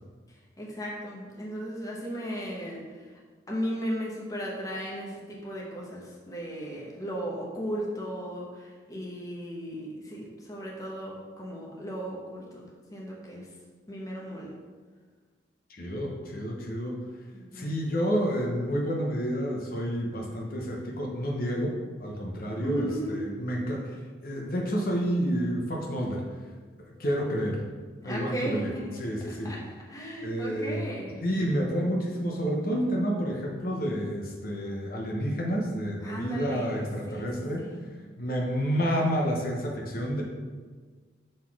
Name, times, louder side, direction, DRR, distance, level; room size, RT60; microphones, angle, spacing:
voice 1, 0.6-3.1 3.5-12.6 12.9-13.5 13.9-14.5 17.3-17.8 22.6-23.2 28.0-29.0 29.4-29.6 29.9-31.2 36.0-37.3 37.6-37.9, equal, 20° left, -3 dB, 1.0 m, -36 dB
voice 2, 15.7-17.0 17.5-26.2 26.8-27.6 28.0-28.7 29.0-29.5 30.2-30.9 31.2-37.7 38.2-40.2, equal, 50° left, 0 dB, 0.9 m, -29 dB
6.5 x 4.0 x 4.8 m, 1.5 s
head